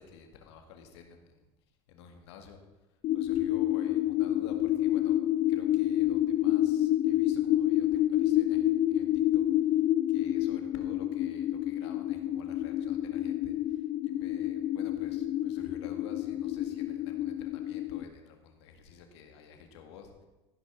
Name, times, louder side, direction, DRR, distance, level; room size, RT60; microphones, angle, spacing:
voice 1, 0.0-1.5 1.9-2.6 3.1-5.2 5.5-20.2, left 6 dB, 85° left, 4 dB, 2.0 m, -51 dB
sound 1, 3.0-18.0, left 13 dB, 50° left, 0.6 m, -28 dB
14.5 x 5.6 x 7.0 m, 1.1 s
supercardioid pair, 110°, 14 cm